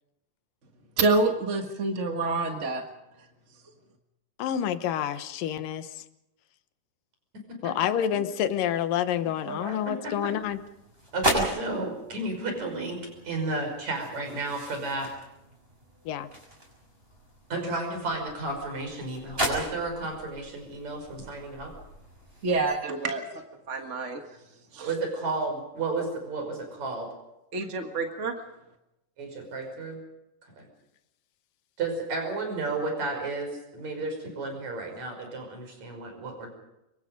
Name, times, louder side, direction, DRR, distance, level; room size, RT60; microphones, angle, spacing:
voice 1, 1.0-2.8 22.4-24.2 24.7-24.9 27.5-28.3, right 3 dB, 40° right, 4 dB, 1.1 m, -27 dB
voice 2, 4.4-6.0 7.6-10.6 16.1-16.3, left 10 dB, 90° left, 11 dB, 2.7 m, -28 dB
voice 3, 9.2-10.3 11.1-13.0 13.3-15.1 17.5-21.7 24.8-27.1 29.2-30.0 30.6-30.7 31.8-36.5, right 3 dB, 55° right, 3 dB, 6.9 m, -32 dB
sound 1, 10.2-22.7, right 1 dB, 15° right, 6.6 m, -36 dB
26.0 x 23.5 x 5.3 m, 0.90 s
omnidirectional pair, 3.8 m